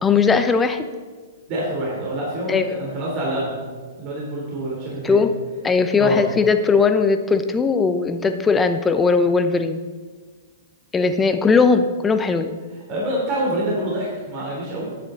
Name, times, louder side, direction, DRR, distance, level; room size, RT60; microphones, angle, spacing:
voice 1, 0.0-0.8 2.5-2.8 5.0-5.3 5.6-9.8 10.9-12.5, left 5 dB, 15° left, 9 dB, 0.7 m, -18 dB
voice 2, 1.5-3.6 4.0-5.2 6.0-6.2 12.9-14.9, right 1 dB, 40° right, -4 dB, 3.4 m, -26 dB
9.6 x 9.1 x 3.9 m, 1.5 s
hypercardioid pair, 120°, 0 cm